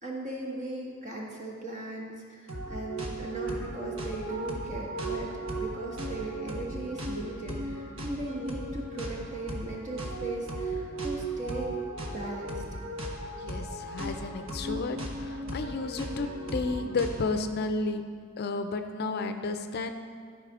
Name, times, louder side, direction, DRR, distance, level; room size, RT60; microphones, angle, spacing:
voice 1, 0.0-5.3 5.6-11.7 12.1-12.6, right 2 dB, 35° right, -2 dB, 1.5 m, -38 dB
sound 1, 2.5-17.4, right 1 dB, 75° right, 1.3 m, -36 dB
voice 2, 13.4-18.0 18.4-19.9, left 3 dB, 50° left, 8 dB, 0.5 m, -32 dB
12.5 x 5.1 x 4.9 m, 2.1 s
head